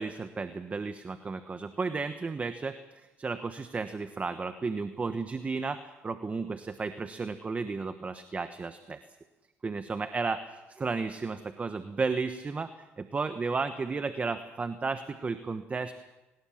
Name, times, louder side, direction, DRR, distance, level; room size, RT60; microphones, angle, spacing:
voice 1, 0.0-9.0 9.6-12.7 13.0-15.9, right 4 dB, 30° right, 9 dB, 1.2 m, -33 dB
22.0 x 19.5 x 7.2 m, 1.1 s
cardioid pair, 90°, 5 cm